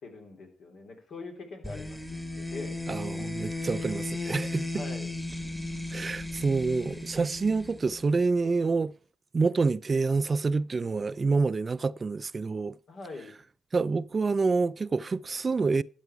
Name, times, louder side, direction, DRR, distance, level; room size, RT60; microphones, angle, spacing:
voice 1, 0.0-3.3 4.7-5.1 12.9-13.4, left 3 dB, 65° left, 3.5 m, -43 dB
sound 1, 1.6-8.3, left 2 dB, 10° left, 1.8 m, -36 dB
sound 2, 1.8-7.8, left 4 dB, 40° left, 7.5 m, -58 dB
voice 2, 2.9-4.7 5.9-8.9 9.3-12.8 13.7-15.8, right 4 dB, 40° right, 0.4 m, -27 dB
12.5 x 8.1 x 4.7 m
supercardioid pair, 50°, 0 cm